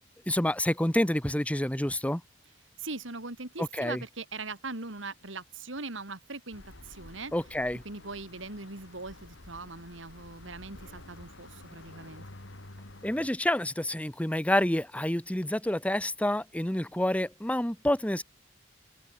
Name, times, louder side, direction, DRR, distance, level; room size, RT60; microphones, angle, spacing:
voice 1, 0.3-2.2 3.6-4.0 7.3-7.8 13.0-18.2, left 1 dB, 5° left, 1.1 m, -28 dB
voice 2, 2.8-7.3 7.8-12.2, right 3 dB, 85° right, 3.3 m, -40 dB
sound 1, 6.5-13.3, left 2 dB, 80° left, 2.5 m, -50 dB
head